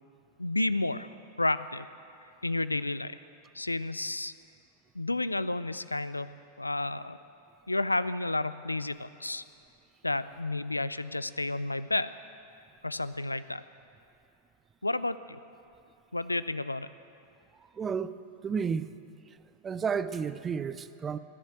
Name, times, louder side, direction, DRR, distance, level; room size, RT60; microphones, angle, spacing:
voice 1, 0.4-1.1 1.4-1.9 2.4-3.2 3.5-4.3 4.9-6.3 6.6-7.2 7.7-9.4 10.0-12.1 12.8-13.6 14.8-15.4 16.1-16.9, left 2 dB, 85° left, 15 dB, 0.4 m, -31 dB
voice 2, 17.8-18.2 18.4-18.9 19.6-21.2, right 6 dB, 20° right, 14 dB, 0.6 m, -31 dB
20.0 x 7.4 x 8.9 m, 2.6 s
figure-of-eight pair, 90°, 0 cm